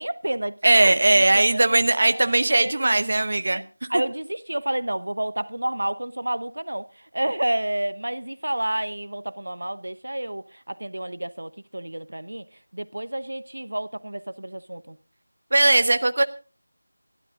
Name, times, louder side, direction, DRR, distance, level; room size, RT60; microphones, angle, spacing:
voice 1, 0.0-0.6 0.8-1.6 2.1-2.3 2.6-3.6 3.9-6.9 7.1-12.4 12.7-15.0, right 1 dB, 75° right, 0.9 m, -30 dB
voice 2, 0.6-3.6 3.9-4.0 15.5-16.2, right 2 dB, 45° right, 0.8 m, -19 dB
24.5 x 12.5 x 2.5 m
figure-of-eight pair, 175°, 0 cm